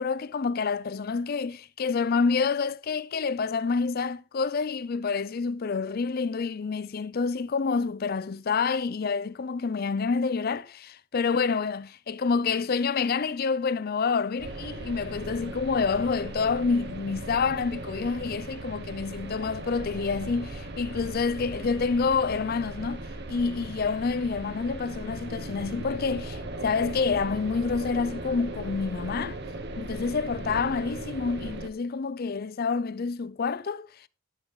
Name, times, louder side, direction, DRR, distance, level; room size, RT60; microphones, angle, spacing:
voice 1, 0.0-29.4 29.8-34.1, left 5 dB, 45° left, 0.4 m, -28 dB
sound 1, 14.4-31.7, right 2 dB, 50° right, 1.0 m, -38 dB
sound 2, 23.1-28.9, equal, 70° right, 1.7 m, -52 dB
11.0 x 8.0 x 3.7 m
head